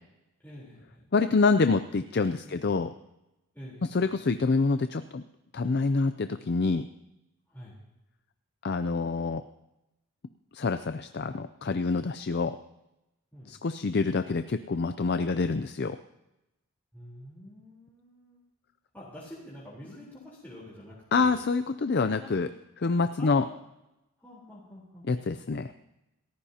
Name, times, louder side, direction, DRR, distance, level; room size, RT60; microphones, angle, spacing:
voice 1, 0.4-1.8 2.4-2.7 3.5-4.2 7.5-7.8 13.3-13.5 16.9-18.4 18.9-21.4 22.1-22.5 23.2-23.6 24.2-25.1, left 1 dB, 10° left, -7 dB, 3.8 m, -47 dB
voice 2, 1.1-2.9 3.9-5.2 5.5-6.9 8.6-9.4 10.5-12.6 13.5-16.0 21.1-22.5 22.8-23.4 25.1-25.7, left 4 dB, 45° left, 9 dB, 0.5 m, -26 dB
27.5 x 15.0 x 2.9 m, 0.94 s
head